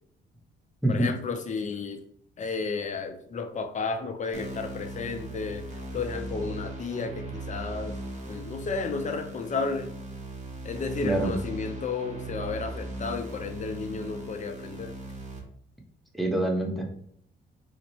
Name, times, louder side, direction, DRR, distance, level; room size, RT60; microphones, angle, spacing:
voice 1, 0.9-2.0 2.4-5.6 5.9-7.9 8.3-9.9 10.6-14.9, left 4 dB, 40° left, 6 dB, 0.5 m, -32 dB
sound 1, 4.3-15.4, right 2 dB, 35° right, 1.0 m, -38 dB
voice 2, 11.0-11.4 16.1-16.9, right 1 dB, ahead, 0 dB, 0.8 m, -25 dB
3.9 x 2.1 x 3.1 m, 0.67 s
cardioid pair, 90°, 20 cm